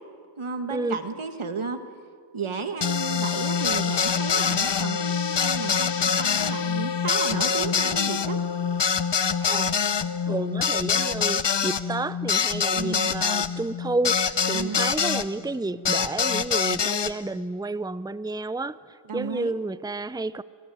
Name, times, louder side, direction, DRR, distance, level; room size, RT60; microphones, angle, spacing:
voice 1, 0.4-1.8 2.3-8.4 12.8-13.1 14.5-14.8 19.1-19.6, right 4 dB, 85° right, 1.8 m, -33 dB
sound 1, 2.8-15.3 15.9-17.1, left 6 dB, 60° left, 1.0 m, -25 dB
voice 2, 9.4-9.8 10.2-20.4, right 2 dB, 10° right, 0.7 m, -30 dB
24.0 x 22.5 x 9.3 m
wide cardioid pair, 45°, 48 cm